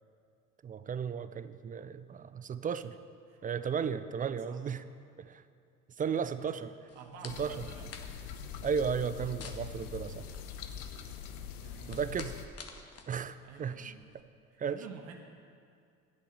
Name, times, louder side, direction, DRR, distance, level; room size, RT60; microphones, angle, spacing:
voice 1, 0.6-3.0 3.4-4.8 5.2-5.4 6.0-6.7 7.2-7.5 8.6-10.2 11.9-12.3 13.1-13.9 14.6-14.8, right 7 dB, 20° right, 13 dB, 0.4 m, -34 dB
voice 2, 6.0-6.6 6.9-7.9 11.6-12.0 13.4-14.1 14.5-15.2, right 5 dB, 70° right, 2 dB, 1.2 m, -50 dB
sound 1, 6.9-14.2, left 5 dB, 35° left, 1.3 m, -52 dB
sound 2, 7.3-12.5, left 7 dB, 80° left, 0.9 m, -43 dB
10.5 x 8.6 x 6.6 m, 2.3 s
hypercardioid pair, 65°, 44 cm